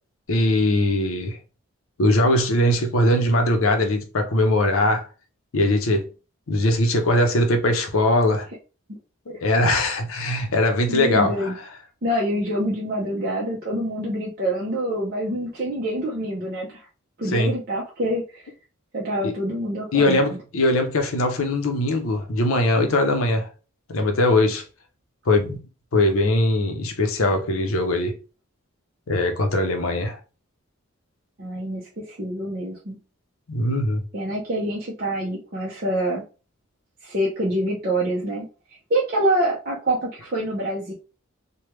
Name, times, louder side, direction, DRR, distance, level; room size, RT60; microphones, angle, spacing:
voice 1, 0.3-1.4 2.0-5.1 5.5-6.1 6.5-8.5 9.3-11.5 17.3-17.5 19.2-19.3 19.9-23.5 23.9-24.6 25.3-25.6 25.9-28.1 29.1-30.2 33.5-34.0, left 1 dB, 80° left, 0.7 m, -21 dB
voice 2, 10.9-11.5 12.0-16.9 17.2-18.5 18.9-20.3 31.4-33.0 34.1-36.2 37.0-38.5 38.9-40.9, right 1 dB, 45° right, 0.7 m, -26 dB
3.3 x 2.3 x 3.0 m
head